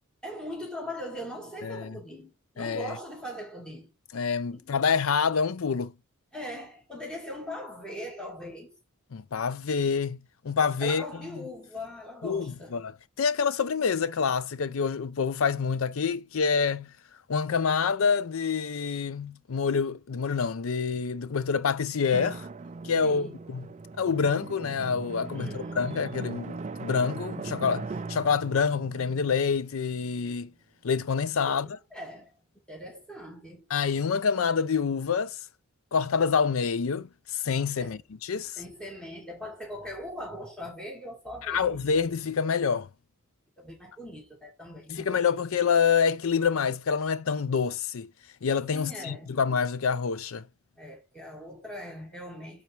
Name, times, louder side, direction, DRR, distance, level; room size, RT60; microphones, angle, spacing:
voice 1, 0.2-3.9 4.5-4.7 6.3-8.7 10.8-12.7 23.0-23.4 25.3-26.0 31.5-32.4 32.7-33.6 37.8-37.9 38.6-41.7 43.6-45.1 48.7-49.4 50.8-52.6, left 1 dB, 5° left, 2.2 m, -40 dB
voice 2, 1.6-2.0 2.6-2.9 4.1-5.9 9.1-10.2 10.4-11.0 12.2-12.5 12.7-12.9 13.2-16.9 17.3-22.5 22.8-23.7 24.0-30.5 30.8-31.7 33.7-35.4 35.9-38.6 41.5-42.9 44.9-48.1 48.4-50.4, left 6 dB, 80° left, 0.5 m, -27 dB
Drum, 22.1-30.4, right 3 dB, 35° right, 0.4 m, -39 dB
8.3 x 4.2 x 4.5 m
head